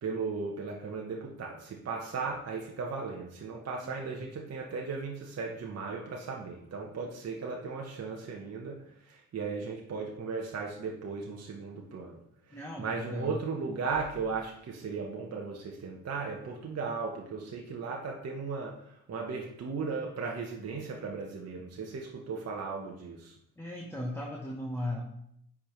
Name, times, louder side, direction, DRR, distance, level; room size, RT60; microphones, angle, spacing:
voice 1, 0.0-12.2 12.5-23.3, right 4 dB, 40° right, -1 dB, 1.1 m, -36 dB
voice 2, 12.5-13.4 23.6-25.0, left 1 dB, 5° left, -1 dB, 1.2 m, -37 dB
9.9 x 3.6 x 3.2 m, 0.74 s
hypercardioid pair, 50°, 40 cm